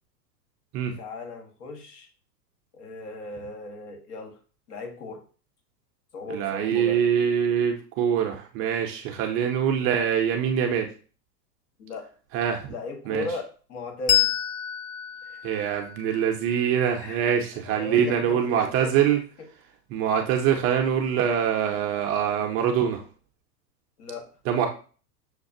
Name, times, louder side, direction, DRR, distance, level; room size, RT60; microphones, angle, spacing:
voice 1, 1.0-2.1 2.7-4.4 4.7-5.2 6.1-7.0 11.8-12.1 12.7-14.3 15.2-15.4 17.0-17.3 17.6-19.0 24.0-24.3, left 3 dB, 65° left, 3 dB, 1.3 m, -37 dB
voice 2, 6.3-10.9 12.3-12.7 13.1-13.3 15.4-19.2 19.9-23.0 24.5-24.7, right 8 dB, 30° right, 3 dB, 0.4 m, -24 dB
Bell, 14.1-17.2, left 11 dB, 25° left, 0.4 m, -28 dB
6.4 x 2.3 x 2.6 m, 0.38 s
hypercardioid pair, 110°, 49 cm